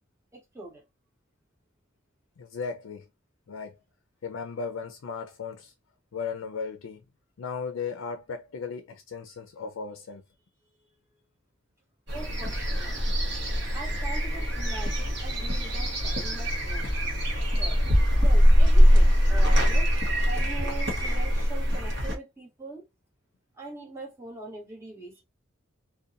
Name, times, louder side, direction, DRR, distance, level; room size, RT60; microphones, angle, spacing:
voice 1, 0.3-0.8 12.1-13.0 13.7-16.9 17.6-17.8 18.1-19.9 20.3-22.8 23.6-25.2, right 3 dB, 15° right, 1.0 m, -42 dB
voice 2, 2.4-3.1 3.5-3.7 4.2-5.7 6.1-7.0 7.4-10.2, left 5 dB, 80° left, 0.4 m, -36 dB
sound 1, 12.1-22.1, equal, 60° right, 0.8 m, -22 dB
2.7 x 2.2 x 2.4 m
head